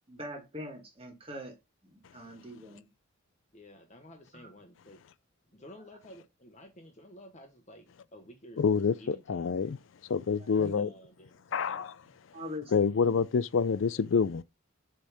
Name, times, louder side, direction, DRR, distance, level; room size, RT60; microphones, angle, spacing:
voice 1, 0.1-1.5 1.9-2.9 4.3-4.5 10.6-10.9 12.3-12.7, left 1 dB, 25° right, 1.8 m, -42 dB
voice 2, 3.5-5.0 5.5-7.9 8.1-8.6 9.0-9.6 10.5-11.9, left 1 dB, 35° left, 1.0 m, -52 dB
voice 3, 8.6-9.8 10.1-10.9 11.5-12.0 12.7-14.4, left 5 dB, 65° left, 0.4 m, -27 dB
7.9 x 3.4 x 4.9 m
head